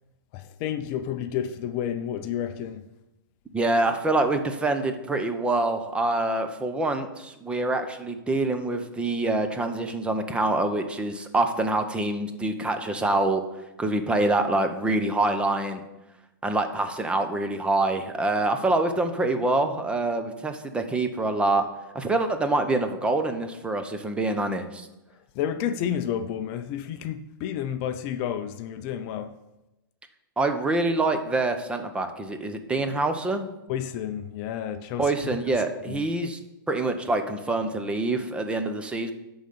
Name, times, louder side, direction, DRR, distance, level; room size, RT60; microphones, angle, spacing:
voice 1, 0.3-2.8 25.3-29.3 33.7-35.4 35.9-36.0, left 9 dB, 35° left, 0.5 m, -30 dB
voice 2, 3.5-13.4 13.8-15.8 16.4-21.7 21.9-24.9 30.4-33.5 35.0-36.4 36.7-39.1, right 2 dB, 10° right, 0.7 m, -25 dB
11.0 x 3.9 x 6.8 m
hypercardioid pair, 135°, 12 cm